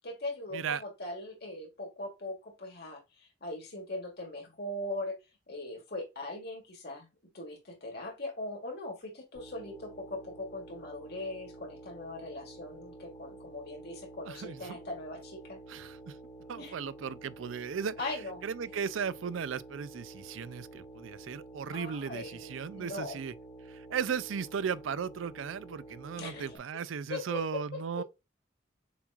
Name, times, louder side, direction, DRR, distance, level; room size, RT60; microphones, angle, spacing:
voice 1, 0.0-5.2 5.5-7.1 7.3-15.6 16.6-16.7 18.0-18.4 21.7-23.2 26.2-26.5 27.1-28.0, left 2 dB, 55° left, 1.9 m, -40 dB
sound 1, 9.3-26.6, right 2 dB, 30° left, 1.4 m, -50 dB
voice 2, 14.2-14.8 15.7-16.2 16.5-17.9 18.4-23.3 23.7-28.0, right 6 dB, 80° right, 0.4 m, -36 dB
6.8 x 3.1 x 2.4 m
head